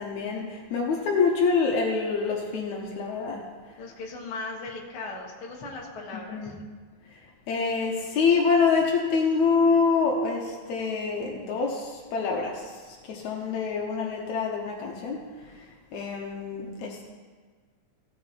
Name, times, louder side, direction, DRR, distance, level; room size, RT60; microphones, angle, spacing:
voice 1, 0.0-3.5 6.1-6.5 7.5-12.6 13.1-15.2 15.9-17.0, left 5 dB, 75° left, 0 dB, 2.4 m, -26 dB
voice 2, 3.8-6.6, left 3 dB, 50° left, -2 dB, 2.2 m, -38 dB
16.5 x 7.0 x 4.4 m, 1.5 s
omnidirectional pair, 3.4 m